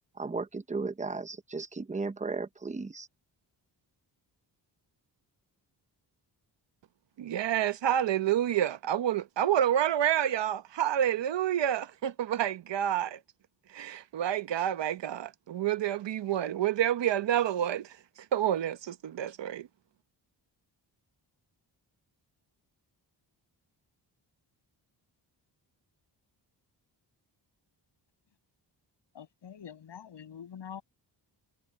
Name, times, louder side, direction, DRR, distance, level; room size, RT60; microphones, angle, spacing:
voice 1, 0.2-3.1, right 4 dB, 15° right, 0.7 m, -35 dB
voice 2, 7.2-13.2 13.7-18.0 18.3-19.7, right 11 dB, 80° right, 1.0 m, -28 dB
voice 3, 29.1-30.8, left 8 dB, 75° left, 7.1 m, -45 dB
wide cardioid pair, 145°, 43 cm